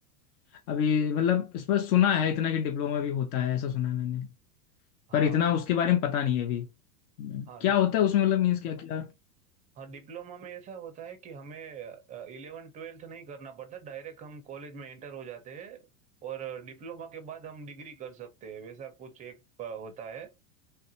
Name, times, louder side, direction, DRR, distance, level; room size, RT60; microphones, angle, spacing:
voice 1, 0.7-4.3 5.1-6.7 7.2-9.1, left 9 dB, 65° left, 0.7 m, -26 dB
voice 2, 5.1-5.4 7.5-7.7 9.8-15.9 16.2-20.3, right 7 dB, 15° right, 0.4 m, -42 dB
3.3 x 2.4 x 2.6 m
supercardioid pair, 125°, 49 cm